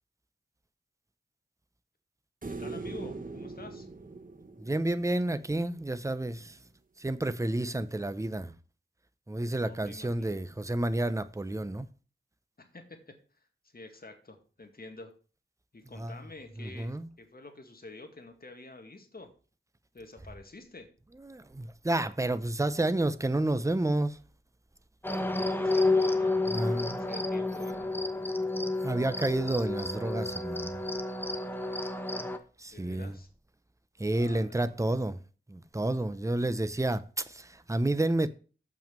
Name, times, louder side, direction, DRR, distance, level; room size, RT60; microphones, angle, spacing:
sound 1, 2.4-5.7 8.3-8.4, right 3 dB, 45° right, 1.4 m, -41 dB
voice 1, 2.6-3.9 9.6-10.4 12.6-13.5 13.7-15.1 15.7-19.3 19.9-20.9 25.6-26.4 27.1-27.9 31.6-32.1 32.7-33.3 34.1-34.8, left 2 dB, 50° left, 2.1 m, -48 dB
voice 2, 4.6-6.6 7.0-8.5 9.3-11.9 16.0-16.1 16.6-17.1 21.2-24.2 26.5-27.0 28.8-30.7 32.6-33.2 34.0-35.2 35.5-38.3, right 1 dB, 15° right, 0.7 m, -30 dB
sound 2, 25.0-32.4, left 2 dB, 10° left, 1.1 m, -30 dB
7.2 x 5.9 x 7.4 m
wide cardioid pair, 60°, 20 cm